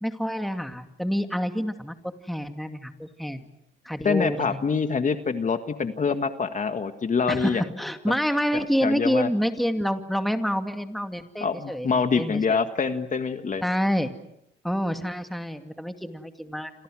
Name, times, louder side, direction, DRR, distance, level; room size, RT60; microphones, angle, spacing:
voice 1, 0.0-1.9 2.3-3.5 3.8-4.6 7.3-12.6 13.6-14.1 14.6-16.7, equal, ahead, 6 dB, 2.4 m, -27 dB
voice 2, 4.0-7.6 8.5-9.3 11.4-13.6, left 5 dB, 40° left, 8 dB, 1.8 m, -25 dB
29.5 x 26.5 x 6.3 m, 0.78 s
cardioid pair, 90°, 20 cm